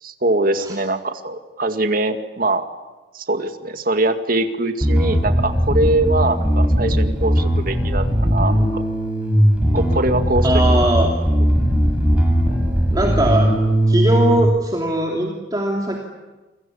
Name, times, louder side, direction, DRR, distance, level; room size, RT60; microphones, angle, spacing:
voice 1, 0.0-2.6 3.1-8.8 9.7-10.6, right 2 dB, 55° right, 7 dB, 2.1 m, -22 dB
Bass guitar, 4.8-14.4, equal, 5° right, 6.9 m, -18 dB
voice 2, 10.4-11.1 12.9-13.5 13.9-16.0, right 1 dB, 25° right, -1 dB, 3.0 m, -20 dB
28.0 x 23.0 x 8.7 m, 1.2 s
head